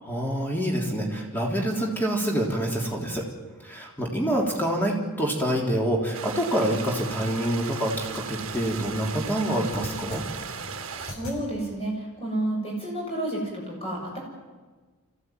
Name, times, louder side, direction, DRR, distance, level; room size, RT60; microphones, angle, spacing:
voice 1, 0.0-3.3 3.6-10.2, right 1 dB, 10° left, -1 dB, 3.5 m, -26 dB
sound 1, 6.1-11.1, right 6 dB, 65° right, 1.7 m, -37 dB
sound 2, 6.4-11.4, left 1 dB, 60° left, 6.0 m, -43 dB
voice 2, 10.9-14.2, right 1 dB, 25° left, -2 dB, 7.3 m, -30 dB
25.5 x 16.0 x 9.4 m, 1.4 s
head